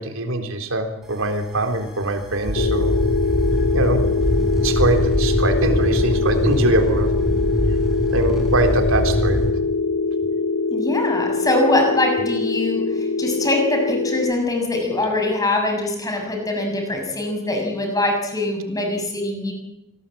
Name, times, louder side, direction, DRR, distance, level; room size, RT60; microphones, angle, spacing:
voice 1, 0.0-2.9 3.7-4.0 4.6-7.1 8.1-9.5, right 2 dB, 85° right, 6 dB, 3.8 m, -23 dB
sound 1, 1.0-9.5, equal, ahead, 5.7 m, -23 dB
sound 2, 2.5-14.3, left 4 dB, 70° left, 1.5 m, -23 dB
voice 2, 10.7-19.5, left 2 dB, 15° left, 3 dB, 6.7 m, -23 dB
26.5 x 20.0 x 8.7 m, 0.89 s
head